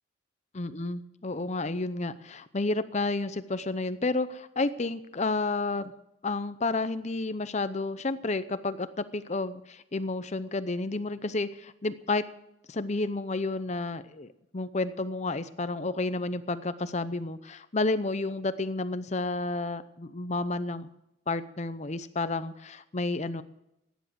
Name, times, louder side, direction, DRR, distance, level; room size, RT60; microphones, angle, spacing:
voice 1, 0.5-5.9 6.2-12.2 12.7-14.3 14.5-20.9 21.3-23.4, left 3 dB, 35° left, 13 dB, 0.7 m, -31 dB
16.5 x 10.5 x 7.6 m, 0.85 s
head